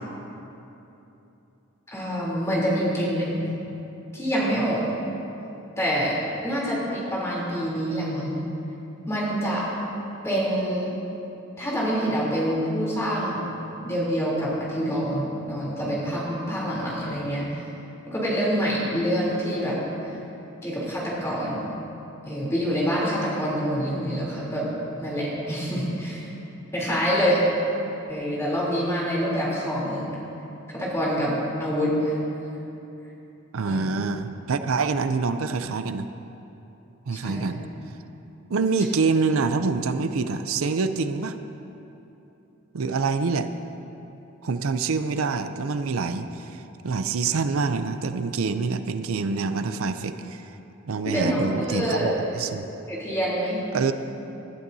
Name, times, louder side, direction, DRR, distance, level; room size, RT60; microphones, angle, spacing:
voice 1, 1.9-3.5 4.1-4.8 5.8-6.2 6.4-8.5 9.1-9.6 10.2-10.9 11.6-13.4 13.8-17.6 18.1-19.8 20.0-20.1 20.6-21.7 22.2-24.7 25.0-26.3 26.7-27.4 28.1-30.1 30.7-32.2 33.6-33.9 37.2-37.4 51.0-52.4 52.9-53.6, equal, 15° left, -7 dB, 3.2 m, -26 dB
voice 2, 33.5-36.1 37.1-37.6 38.5-41.4 42.7-43.5 44.4-50.5 50.9-52.7 53.7-53.9, right 4 dB, 90° right, 9 dB, 0.5 m, -26 dB
20.5 x 12.0 x 2.7 m, 3.0 s
head